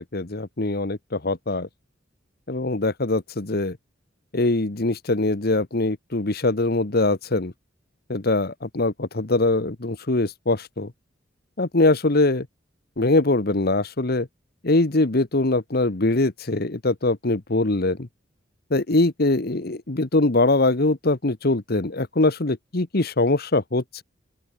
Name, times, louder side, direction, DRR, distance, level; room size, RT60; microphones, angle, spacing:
voice 1, 0.0-1.7 2.5-3.8 4.3-7.5 8.1-10.9 11.6-12.5 13.0-14.3 14.6-18.1 18.7-24.0, left 2 dB, 55° left, 1.3 m, -22 dB
open air
head